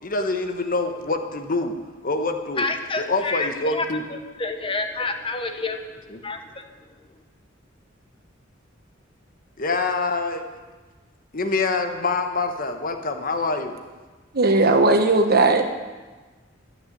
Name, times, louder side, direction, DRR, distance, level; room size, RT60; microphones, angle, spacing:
voice 1, 0.0-1.8 2.0-2.7 3.0-4.0 6.1-6.2 9.6-10.5 11.3-13.7, left 3 dB, 45° left, 6 dB, 1.2 m, -25 dB
voice 2, 2.6-3.9 4.1-5.8 6.2-6.6, left 3 dB, 25° left, 6 dB, 1.1 m, -28 dB
voice 3, 14.3-15.6, right 2 dB, 50° right, 6 dB, 1.3 m, -17 dB
12.5 x 8.8 x 9.4 m, 1.3 s
head